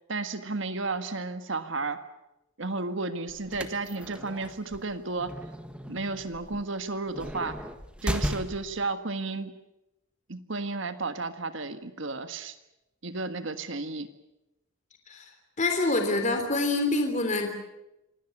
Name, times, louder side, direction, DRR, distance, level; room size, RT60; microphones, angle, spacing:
voice 1, 0.1-2.0 2.6-5.4 5.9-7.6 8.0-9.6 10.3-12.5 13.0-14.1, right 3 dB, 65° right, 10 dB, 1.6 m, -33 dB
sound 1, 3.3-8.8, equal, 5° right, 1.6 m, -36 dB
voice 2, 15.6-17.5, left 2 dB, 35° left, 5 dB, 3.4 m, -26 dB
26.0 x 18.0 x 9.7 m, 0.92 s
head